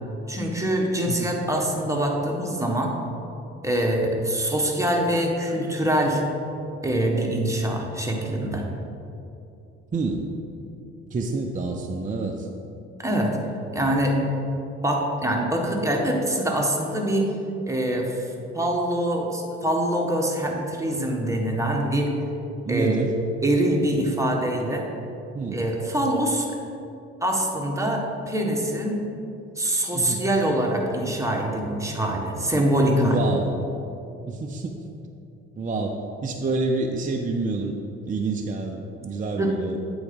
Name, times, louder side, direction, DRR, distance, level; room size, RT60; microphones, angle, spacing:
voice 1, 0.3-2.9 3.6-6.2 6.8-8.6 13.0-13.3 13.7-14.2 14.8-17.3 17.7-18.3 18.5-22.1 22.7-23.0 23.4-24.8 25.5-26.5 27.2-29.0 29.6-33.2 39.3-39.8, right 1 dB, 10° right, 0 dB, 1.3 m, -24 dB
voice 2, 1.0-1.3 9.9-10.2 11.1-12.5 22.6-23.1 23.6-23.7 25.3-25.6 29.9-30.3 33.0-33.5 34.3-34.7 35.6-37.8 38.1-39.8, right 3 dB, 25° right, 2 dB, 0.6 m, -28 dB
8.3 x 4.0 x 5.2 m, 2.8 s
supercardioid pair, 60°, 30 cm